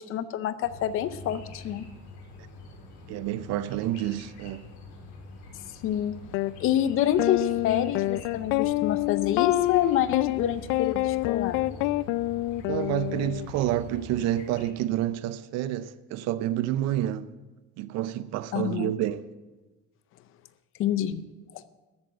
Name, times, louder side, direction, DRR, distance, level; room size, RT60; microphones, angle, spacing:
voice 1, 0.0-1.9 5.8-6.2 6.6-11.6 18.5-18.9 20.8-21.2 21.5-21.6, left 10 dB, 45° left, 0.6 m, -27 dB
sound 1, 0.6-14.7, left 3 dB, 70° left, 4.0 m, -45 dB
voice 2, 3.1-4.7 12.7-17.3 17.8-19.2, right 13 dB, 60° right, 0.6 m, -29 dB
sound 2, 6.3-6.5 7.2-13.5, left 18 dB, 85° left, 0.5 m, -27 dB
13.0 x 8.6 x 7.6 m
cardioid pair, 175°, 30 cm